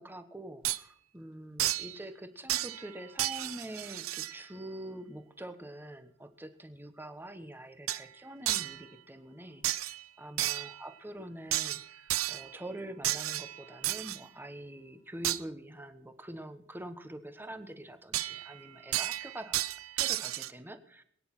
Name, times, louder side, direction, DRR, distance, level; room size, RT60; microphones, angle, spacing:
voice 1, 0.0-19.6 20.0-21.0, right 1 dB, 10° right, 9 dB, 1.2 m, -45 dB
sound 1, 0.6-0.8 1.6-2.0 2.5-2.9 3.2-4.4 7.9-8.1 8.5-8.8 9.6-10.0 10.4-10.8 11.5-12.5 13.0-14.2 15.2-15.4 18.1-18.6 18.9-20.5, right 14 dB, 85° right, 0.6 m, -32 dB
22.0 x 9.6 x 6.0 m, 0.65 s
head